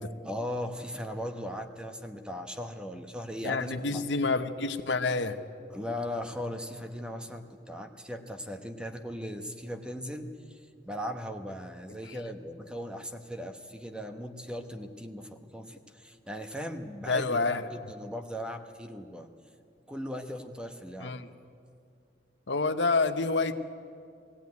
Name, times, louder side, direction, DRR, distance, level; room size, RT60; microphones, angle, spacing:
voice 1, 0.2-4.0 5.7-10.6 10.8-19.3 19.9-21.1, equal, 5° right, 6 dB, 1.1 m, -38 dB
voice 2, 3.4-5.4 12.1-12.2 17.1-17.7 21.0-21.3 22.5-23.5, left 3 dB, 80° left, 9 dB, 1.0 m, -28 dB
20.5 x 15.5 x 9.5 m, 2.4 s
head